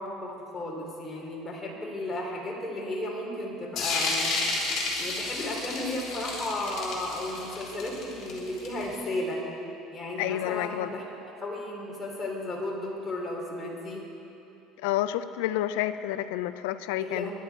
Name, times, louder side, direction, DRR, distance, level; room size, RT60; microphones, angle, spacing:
voice 1, 0.0-4.4 5.0-9.4 9.9-11.1 11.4-14.0 17.0-17.3, left 1 dB, 15° left, -3 dB, 2.9 m, -34 dB
sound 1, 3.8-9.1, left 3 dB, 40° left, 3.5 m, -31 dB
voice 2, 10.2-10.9 14.8-17.3, left 13 dB, 90° left, 13 dB, 0.5 m, -29 dB
23.0 x 10.5 x 4.6 m, 2.8 s
cardioid pair, 150°, 0 cm